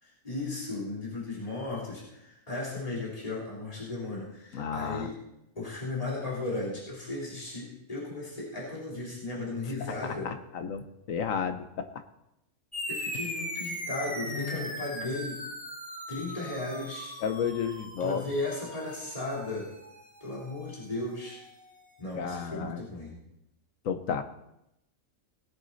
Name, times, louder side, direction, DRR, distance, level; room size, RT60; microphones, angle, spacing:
voice 1, 0.0-5.1 5.5-10.3 12.9-15.4 16.1-17.1 18.0-19.7 20.2-21.4 22.0-23.2, left 2 dB, 25° left, -6 dB, 3.9 m, -35 dB
voice 2, 4.5-5.1 10.0-11.9 14.2-14.9 17.2-18.2 22.1-22.8 23.8-24.2, left 7 dB, 75° left, 9 dB, 1.4 m, -32 dB
sound 1, 12.7-21.6, left 1 dB, 5° left, 1.1 m, -40 dB
19.0 x 8.1 x 4.1 m, 0.86 s
omnidirectional pair, 1.4 m